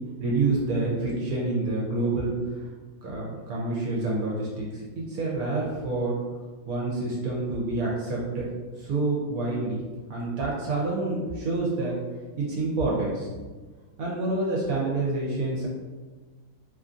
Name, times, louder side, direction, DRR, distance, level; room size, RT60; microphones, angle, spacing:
voice 1, 0.2-2.3 3.0-6.2 6.7-8.5 8.8-9.8 10.1-12.0 12.4-13.3 14.0-15.7, right 2 dB, 70° right, -4 dB, 1.0 m, -27 dB
2.9 x 2.5 x 2.4 m, 1.3 s
omnidirectional pair, 1.7 m